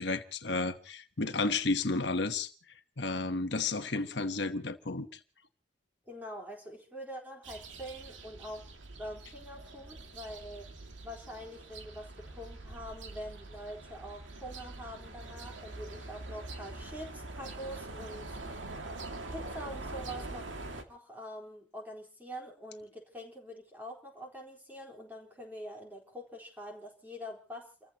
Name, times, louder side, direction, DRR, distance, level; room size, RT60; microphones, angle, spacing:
voice 1, 0.0-2.5 3.0-5.1, left 3 dB, 70° left, 1.2 m, -32 dB
voice 2, 6.1-8.7 9.0-10.7 11.0-18.8 19.3-20.4 20.9-27.9, equal, 10° right, 4.0 m, -45 dB
sound 1, 7.4-20.8, right 2 dB, 90° right, 2.3 m, -44 dB
30.0 x 15.0 x 3.0 m
head